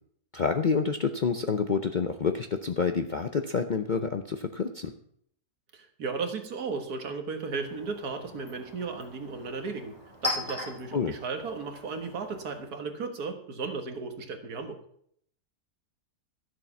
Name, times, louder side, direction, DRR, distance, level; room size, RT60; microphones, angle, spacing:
voice 1, 0.3-4.9 10.9-11.1, left 5 dB, 55° left, 7 dB, 0.5 m, -28 dB
voice 2, 5.7-10.0 10.2-14.8, right 4 dB, 80° right, 5 dB, 2.0 m, -35 dB
Chink clink, 7.3-12.8, left 1 dB, 20° left, 5.8 m, -40 dB
13.5 x 7.6 x 5.9 m, 0.67 s
omnidirectional pair, 1.6 m